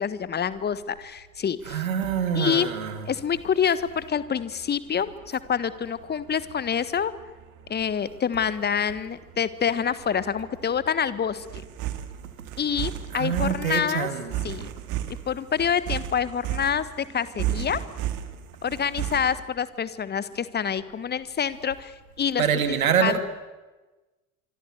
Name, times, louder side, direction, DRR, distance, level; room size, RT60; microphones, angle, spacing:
voice 1, 0.0-1.8 2.3-2.7 3.1-7.1 7.7-11.5 12.6-14.1 14.4-14.7 15.1-17.8 18.6-21.9 22.2-22.4 23.0-23.2, left 7 dB, 25° left, 15 dB, 1.5 m, -27 dB
voice 2, 1.6-3.1 13.1-14.3 22.4-23.2, right 7 dB, 70° right, 8 dB, 2.8 m, -25 dB
sound 1, 3.2-19.4, right 11 dB, 45° right, 2.4 m, -35 dB
25.5 x 24.5 x 8.1 m, 1.2 s
figure-of-eight pair, 70°, 43 cm